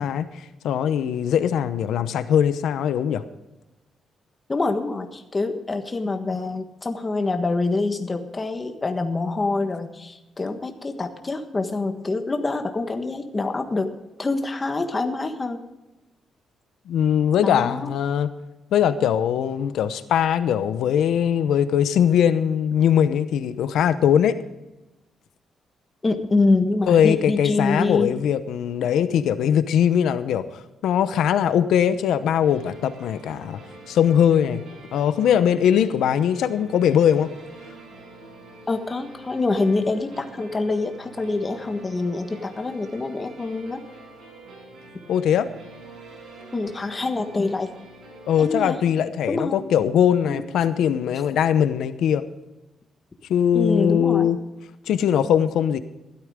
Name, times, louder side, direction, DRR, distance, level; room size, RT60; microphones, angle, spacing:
voice 1, 0.0-3.2 16.9-18.3 18.7-24.4 26.9-33.6 33.9-34.6 34.9-37.3 45.1-45.5 48.3-52.2 53.3-54.4 54.9-55.8, left 9 dB, 85° left, 11 dB, 0.8 m, -21 dB
voice 2, 4.5-13.9 14.2-15.6 17.4-17.9 26.0-28.1 38.7-43.8 46.5-47.7 48.4-48.8 49.3-49.6 50.2-50.4 53.5-54.3, left 3 dB, 20° left, 5 dB, 1.4 m, -25 dB
sound 1, 31.4-48.8, right 2 dB, 70° right, 5.9 m, -46 dB
15.5 x 13.0 x 3.7 m, 1.0 s
cardioid pair, 150°, 0 cm